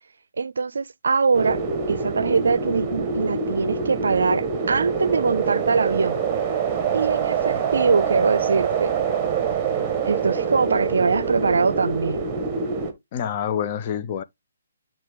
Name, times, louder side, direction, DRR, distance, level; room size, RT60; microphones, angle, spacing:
voice 1, 0.4-1.6 1.9-6.2 6.9-8.9 10.0-12.2, right 5 dB, 75° right, 0.4 m, -22 dB
sound 1, 1.3-12.9, right 6 dB, 20° right, 1.5 m, -25 dB
voice 2, 13.1-14.2, left 9 dB, 35° left, 0.7 m, -27 dB
9.2 x 3.6 x 3.6 m
hypercardioid pair, 150°, 0 cm